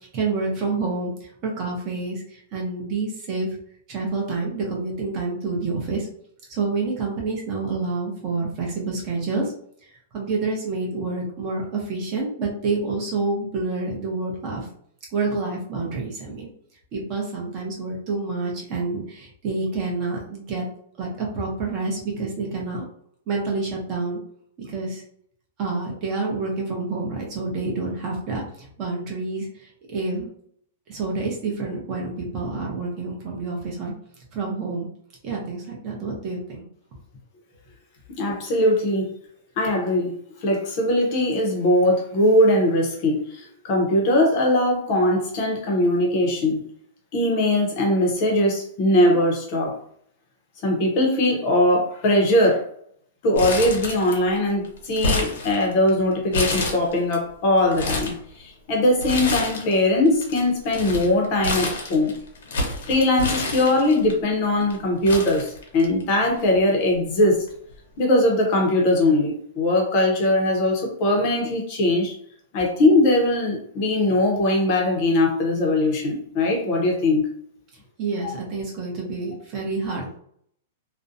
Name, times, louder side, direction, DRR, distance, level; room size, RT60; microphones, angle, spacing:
voice 1, 0.1-3.6 3.9-6.1 6.5-9.5 9.8-14.7 15.1-16.5 16.9-20.6 21.0-22.8 23.3-24.2 24.6-25.0 25.6-30.3 30.9-33.9 34.3-34.9 35.2-36.6 78.0-80.2, right 3 dB, 25° right, -2 dB, 0.6 m, -28 dB
voice 2, 38.1-39.1 39.6-40.1 40.4-46.6 47.1-49.7 50.6-52.6 53.2-62.1 62.8-67.4 68.0-72.1 72.5-77.3, left 1 dB, 30° left, 0 dB, 0.6 m, -20 dB
Crumpling crinkling, 53.4-54.4 54.6-55.9 56.3-57.2 57.6-58.2 59.0-59.8 60.1-64.1 64.7-64.8 65.1-66.1 66.4-66.5 67.5-67.7, left 2 dB, 75° left, 0.8 m, -28 dB
2.5 x 2.1 x 2.6 m, 0.64 s
supercardioid pair, 180°, 0 cm